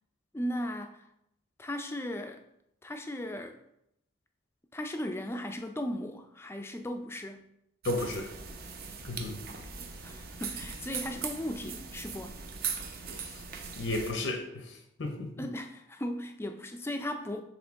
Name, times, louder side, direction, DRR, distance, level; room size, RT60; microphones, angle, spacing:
voice 1, 0.3-1.0 1.6-2.4 2.8-3.6 4.7-7.5 9.8-12.4 15.4-17.4, left 1 dB, 10° left, 6 dB, 0.4 m, -37 dB
voice 2, 7.8-8.3 9.1-9.4 13.2-13.4 13.8-15.5, left 2 dB, 80° left, 4 dB, 0.7 m, -34 dB
sound 1, 7.8-14.1, right 6 dB, 50° right, 0.7 m, -40 dB
7.2 x 3.7 x 3.5 m, 0.80 s
head